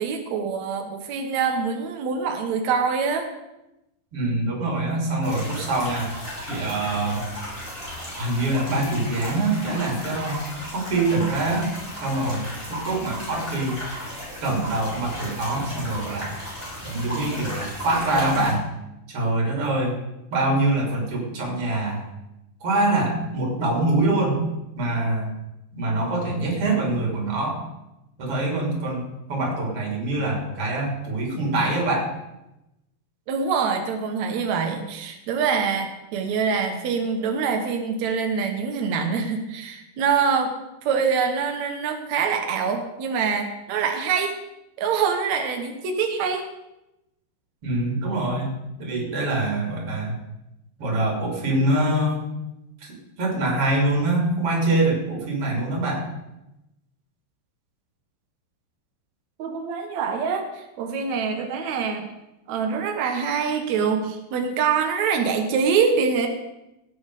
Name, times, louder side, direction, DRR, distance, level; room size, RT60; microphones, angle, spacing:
voice 1, 0.0-3.3 33.3-40.5 40.8-44.3 44.8-46.4 59.4-62.0 62.5-66.3, right 6 dB, 85° right, 4 dB, 1.5 m, -25 dB
voice 2, 4.1-6.1 6.5-7.3 8.1-10.4 10.7-11.7 12.0-13.8 14.4-16.3 16.8-18.7 19.1-19.9 20.3-22.0 22.6-24.4 24.8-25.3 25.7-27.6 28.2-29.0 29.3-32.1 47.6-50.1 50.8-52.3 52.8-56.0, right 2 dB, 35° right, -1 dB, 3.6 m, -24 dB
sound 1, 5.2-18.5, equal, 10° left, 6.2 m, -35 dB
17.0 x 8.8 x 4.9 m, 0.92 s
omnidirectional pair, 5.0 m